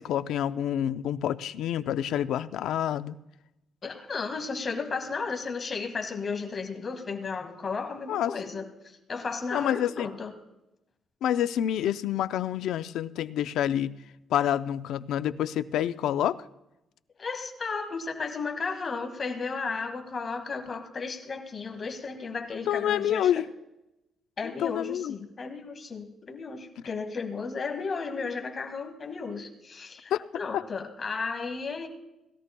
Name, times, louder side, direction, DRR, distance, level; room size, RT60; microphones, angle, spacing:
voice 1, 0.0-3.2 8.1-8.4 9.5-10.1 11.2-14.0 14.3-16.4 22.7-23.4 24.4-25.1 30.1-30.3 30.5-30.6, left 10 dB, 85° left, 13 dB, 0.5 m, -28 dB
voice 2, 3.8-8.7 9.1-10.3 17.2-23.4 24.4-31.9, left 4 dB, 35° left, 5 dB, 1.8 m, -34 dB
20.0 x 13.5 x 2.3 m, 0.90 s
cardioid pair, 110°, 0 cm